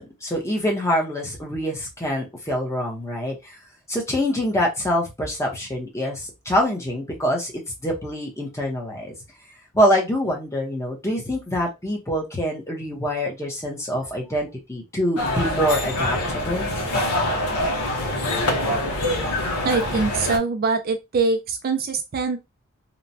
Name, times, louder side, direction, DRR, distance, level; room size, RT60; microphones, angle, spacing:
voice 1, 0.0-3.6 3.9-7.5 7.8-9.1 9.7-16.7, equal, 15° left, 0.7 m, -25 dB
sound 1, 15.2-20.4, left 1 dB, 80° left, 0.7 m, -24 dB
voice 2, 19.6-22.4, right 4 dB, 45° right, 0.3 m, -23 dB
2.9 x 2.1 x 2.6 m
head